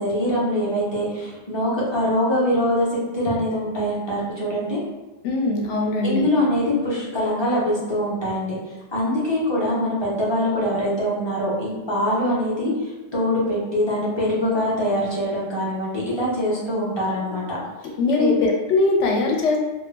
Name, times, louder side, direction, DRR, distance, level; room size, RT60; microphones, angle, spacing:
voice 1, 0.0-2.9 3.1-4.8 6.0-8.6 8.9-12.7 13.1-17.6 18.1-18.3, equal, 30° left, -7 dB, 0.5 m, -23 dB
voice 2, 5.2-6.3 18.0-19.6, left 3 dB, 75° left, 0 dB, 0.9 m, -21 dB
2.3 x 2.1 x 3.2 m, 1.2 s
omnidirectional pair, 1.3 m